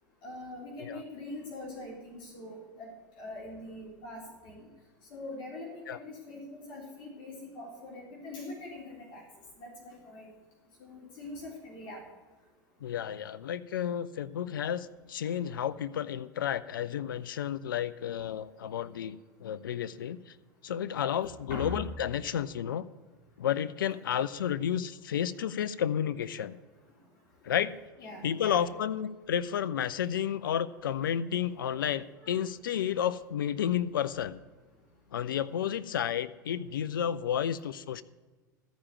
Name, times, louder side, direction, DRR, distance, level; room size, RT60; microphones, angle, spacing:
voice 1, 0.2-4.6 5.1-9.2 9.6-10.2 10.8-12.0 21.5-21.8 28.0-28.7 32.2-32.3, left 2 dB, 50° left, -3 dB, 3.7 m, -43 dB
voice 2, 12.8-20.3 20.6-22.9 23.4-26.6 27.4-27.7 28.2-34.4 35.1-38.0, left 9 dB, 80° left, 15 dB, 0.5 m, -31 dB
13.5 x 5.1 x 9.1 m, 1.2 s
hypercardioid pair, 90°, 11 cm